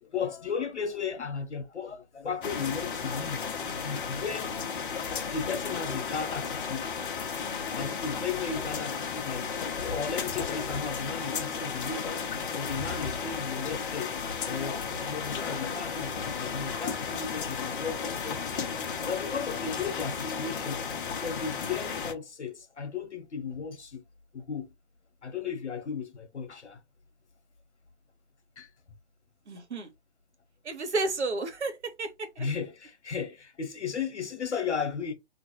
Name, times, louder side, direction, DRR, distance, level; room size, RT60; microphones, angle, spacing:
voice 1, 0.0-4.6 5.3-6.9 7.7-9.5 9.8-12.3 12.5-14.1 14.4-18.7 19.1-20.8 21.2-24.0 24.3-24.7 25.2-26.8 28.6-28.7 32.4-35.1, left 6 dB, 75° left, 1.1 m, -35 dB
sound 1, 2.4-22.1, left 6 dB, 50° left, 0.8 m, -34 dB
voice 2, 29.5-29.9 30.6-32.1 32.4-32.5, right 3 dB, 75° right, 1.1 m, -31 dB
3.0 x 2.6 x 3.0 m
figure-of-eight pair, 130°, 34 cm